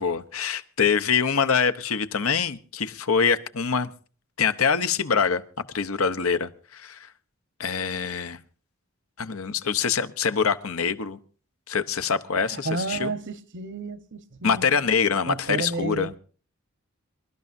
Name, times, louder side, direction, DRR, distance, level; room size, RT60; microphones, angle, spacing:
voice 1, 0.0-3.9 4.4-5.4 5.7-7.1 7.6-8.4 9.2-11.2 11.7-13.1 14.4-16.1, left 6 dB, 90° left, 1.0 m, -24 dB
voice 2, 12.4-14.9 15.3-16.2, right 3 dB, 60° right, 1.1 m, -32 dB
27.0 x 12.5 x 2.7 m
head